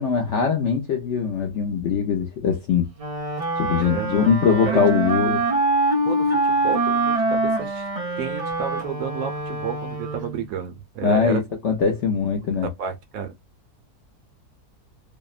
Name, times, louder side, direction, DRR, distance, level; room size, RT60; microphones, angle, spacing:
voice 1, 0.0-2.9 3.6-5.4 11.0-12.7, left 6 dB, 60° left, 0.8 m, -21 dB
Wind instrument woodwind instrument, 3.0-10.5, right 2 dB, 55° right, 0.4 m, -24 dB
voice 2, 6.0-7.9 8.2-11.4 12.8-13.3, right 8 dB, 70° right, 0.9 m, -31 dB
2.7 x 2.0 x 2.4 m
omnidirectional pair, 1.7 m